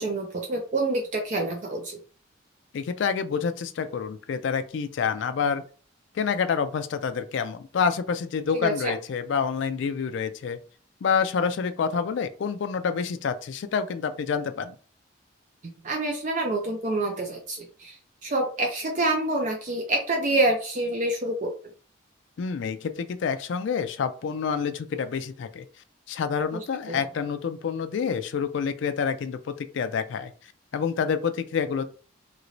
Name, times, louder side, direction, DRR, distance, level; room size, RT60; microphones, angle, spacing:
voice 1, 0.0-2.0 8.5-8.9 15.8-18.0 18.2-21.5 26.5-27.1, right 2 dB, 40° right, 2 dB, 0.4 m, -27 dB
voice 2, 2.7-5.6 6.2-10.6 11.0-14.8 22.4-25.6 26.1-30.3 30.7-31.8, left 6 dB, 65° left, 9 dB, 0.3 m, -28 dB
3.0 x 2.9 x 2.6 m, 0.39 s
head